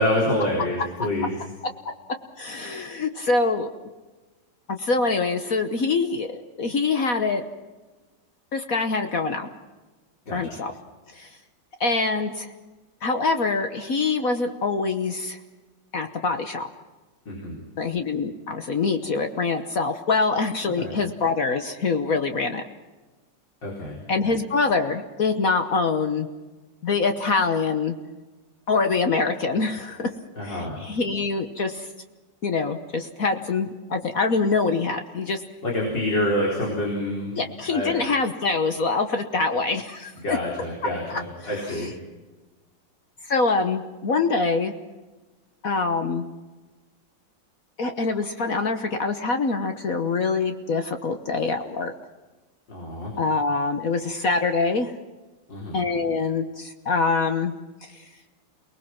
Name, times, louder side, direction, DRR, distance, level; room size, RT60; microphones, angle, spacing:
voice 1, 0.0-1.4 10.3-10.5 17.3-17.6 20.7-20.9 23.6-24.0 24.3-24.4 30.4-30.8 35.6-37.3 37.7-37.9 40.2-41.9 52.7-53.1 55.5-55.8, left 1 dB, 75° left, -3 dB, 5.0 m, -27 dB
voice 2, 2.4-3.7 4.7-7.4 8.5-9.5 10.3-10.7 11.1-11.3 11.8-12.5 13.0-15.4 15.9-16.7 17.8-22.6 24.1-26.3 26.8-27.9 28.7-30.1 30.4-31.9 32.4-35.4 37.3-40.4 41.1-41.9 43.2-44.7 45.6-46.3 47.8-51.9 53.2-54.9 55.7-57.5, left 4 dB, 50° left, 7 dB, 1.5 m, -24 dB
29.0 x 19.5 x 6.0 m, 1.2 s
omnidirectional pair, 2.0 m